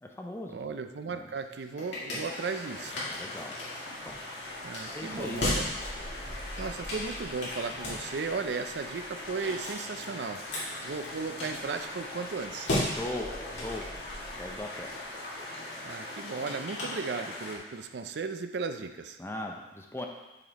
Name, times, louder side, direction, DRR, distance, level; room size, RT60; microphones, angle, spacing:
voice 1, 0.0-0.6 1.1-1.3 3.1-3.6 4.9-5.4 12.9-13.9 14.3-14.9 19.2-20.1, left 1 dB, 15° left, 1 dB, 0.5 m, -38 dB
voice 2, 0.5-3.0 4.6-5.7 6.6-10.4 10.8-12.7 15.8-19.2, right 4 dB, 70° right, 9 dB, 0.4 m, -35 dB
sound 1, 1.3-17.6, left 1 dB, 80° left, 2.1 m, -38 dB
sound 2, 2.2-17.6, left 2 dB, 65° left, 1.5 m, -41 dB
5.9 x 5.1 x 4.0 m, 1.1 s
head